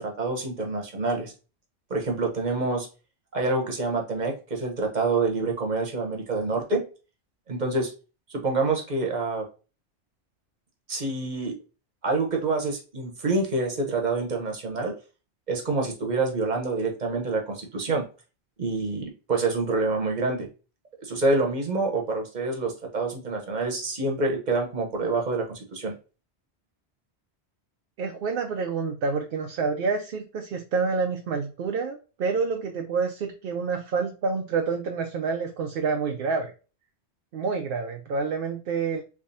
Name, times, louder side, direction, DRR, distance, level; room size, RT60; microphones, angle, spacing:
voice 1, 0.0-1.3 1.9-2.9 3.3-6.8 7.5-7.9 8.3-9.4 10.9-11.5 12.0-14.9 15.5-18.0 18.6-20.5 21.0-25.9, right 3 dB, 45° right, 2 dB, 1.0 m, -27 dB
voice 2, 28.0-36.5 37.3-39.0, right 4 dB, 60° right, 3 dB, 0.7 m, -28 dB
3.4 x 3.3 x 2.6 m, 0.34 s
omnidirectional pair, 1.1 m